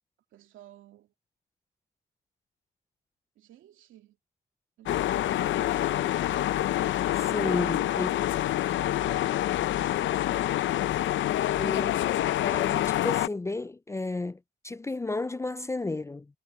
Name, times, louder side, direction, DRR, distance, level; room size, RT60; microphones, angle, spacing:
voice 1, 0.3-1.1 3.4-4.2 4.8-6.6 7.3-8.4 8.7-9.7, right 12 dB, 80° right, 2.6 m, -51 dB
sound 1, 4.9-13.3, left 13 dB, 70° left, 0.6 m, -27 dB
voice 2, 7.2-8.1 11.6-12.1 12.4-16.3, left 2 dB, 15° left, 0.4 m, -32 dB
cardioid pair, 90°, 20 cm